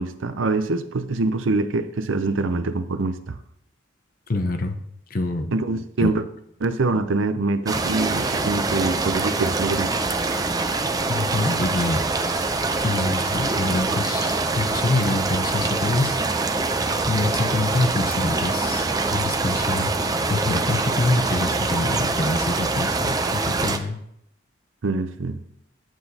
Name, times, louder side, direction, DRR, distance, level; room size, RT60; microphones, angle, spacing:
voice 1, 0.0-3.4 5.5-6.2 6.6-9.9 24.8-25.4, right 3 dB, 75° right, 11 dB, 0.6 m, -24 dB
voice 2, 4.3-4.8 5.1-5.5 6.0-6.1 11.1-12.4 12.8-16.2 17.1-19.9 20.3-24.0, left 2 dB, 45° left, 7 dB, 0.7 m, -25 dB
sound 1, 7.7-23.8, right 3 dB, 20° right, 0.5 m, -24 dB
9.0 x 7.8 x 2.8 m, 0.75 s
head